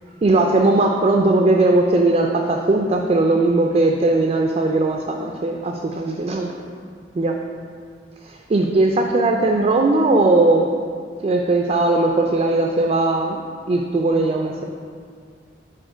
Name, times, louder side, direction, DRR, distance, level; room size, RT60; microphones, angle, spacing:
voice 1, 0.2-6.5 7.1-7.4 8.2-10.7 11.2-13.4 13.7-14.6, right 2 dB, 35° right, 1 dB, 0.3 m, -18 dB
5.0 x 4.1 x 4.9 m, 2.1 s
head